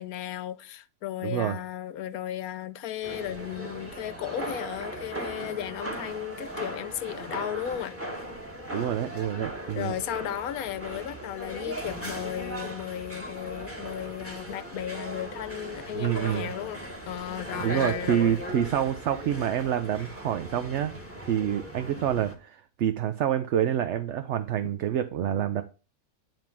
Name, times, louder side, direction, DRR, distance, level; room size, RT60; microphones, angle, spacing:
voice 1, 0.0-7.9 9.7-18.4 24.6-24.7, left 11 dB, 75° left, 1.1 m, -35 dB
voice 2, 1.2-1.6 8.7-10.0 15.9-16.5 17.6-21.0 21.2-25.6, right 10 dB, 65° right, 0.8 m, -27 dB
sound 1, 3.0-22.4, right 1 dB, 10° right, 1.4 m, -38 dB
10.5 x 3.6 x 7.3 m
omnidirectional pair, 1.6 m